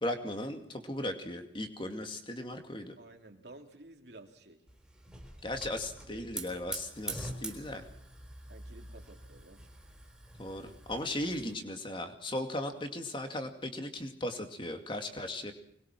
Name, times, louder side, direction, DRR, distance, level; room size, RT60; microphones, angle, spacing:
voice 1, 0.0-2.9 5.4-7.9 10.4-15.5, left 1 dB, 25° left, 6 dB, 2.3 m, -37 dB
voice 2, 3.0-4.6 6.1-6.2 8.5-9.6, right 2 dB, 60° right, 3 dB, 3.1 m, -53 dB
Hiss / Fire, 4.7-11.5, right 2 dB, 5° right, 3.9 m, -45 dB
25.0 x 21.0 x 6.2 m, 0.75 s
head